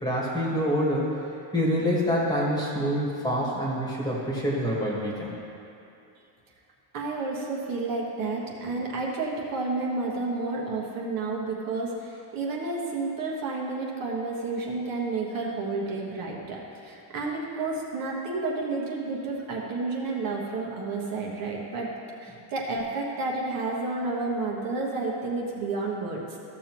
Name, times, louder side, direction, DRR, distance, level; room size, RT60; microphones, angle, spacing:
voice 1, 0.0-1.1 1.5-5.3, equal, 10° left, -5 dB, 1.5 m, -26 dB
voice 2, 6.9-21.9 22.2-26.4, right 3 dB, 45° right, -3 dB, 1.4 m, -31 dB
14.0 x 7.0 x 3.0 m, 2.7 s
cardioid pair, 155°, 46 cm